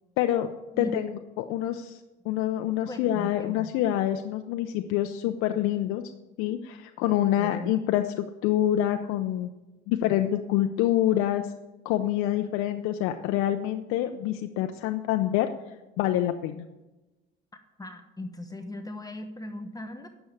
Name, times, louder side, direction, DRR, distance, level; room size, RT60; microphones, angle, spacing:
voice 1, 0.2-0.5 0.8-2.0 2.2-6.0 6.4-9.5 9.9-11.5 11.8-15.5 16.0-16.7, left 12 dB, 85° left, 7 dB, 0.6 m, -26 dB
voice 2, 2.9-3.8 7.4-7.8 17.8-20.1, left 1 dB, 15° left, 6 dB, 1.2 m, -38 dB
10.5 x 7.0 x 7.2 m, 1.1 s
supercardioid pair, 85°, 21 cm